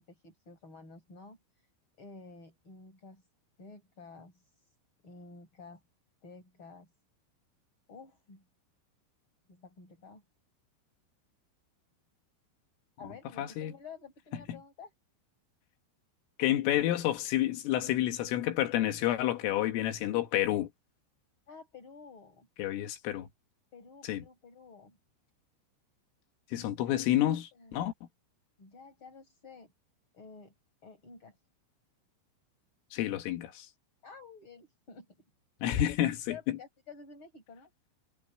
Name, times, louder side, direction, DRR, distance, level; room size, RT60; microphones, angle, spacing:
voice 1, 0.0-1.7 2.0-3.3 3.6-4.7 5.0-5.8 6.2-6.9 7.9-8.4 9.5-10.2 13.0-14.9 21.5-22.5 23.7-25.0 26.5-26.8 27.5-27.7 28.6-29.7 30.1-30.5 30.8-31.4 34.0-35.1 36.3-37.7, left 4 dB, 25° left, 5.8 m, -51 dB
voice 2, 13.4-13.7 14.5-14.6 16.4-20.7 22.6-23.3 24.1-24.2 26.5-27.9 32.9-33.7 35.6-36.3, left 13 dB, 85° left, 4.3 m, -29 dB
omnidirectional pair, 5.7 m